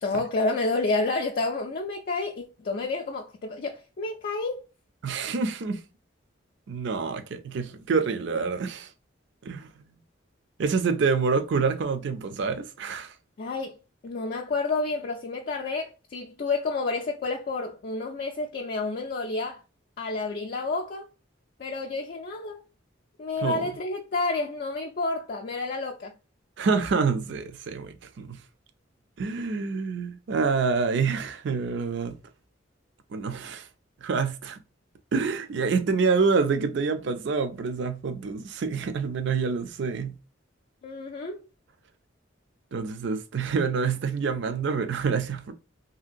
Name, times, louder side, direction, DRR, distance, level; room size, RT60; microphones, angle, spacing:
voice 1, 0.0-4.6 13.4-13.8 14.0-19.6 20.0-21.1 21.6-22.6 23.2-26.1 40.8-41.4, left 3 dB, 50° left, 0.4 m, -30 dB
voice 2, 5.0-5.8 6.7-8.9 9.5-9.8 10.6-13.1 23.4-23.6 26.6-28.4 29.2-32.1 33.1-33.7 34.0-34.6 35.1-40.1 42.7-45.5, right 5 dB, 65° right, 0.4 m, -27 dB
3.0 x 2.7 x 2.5 m
head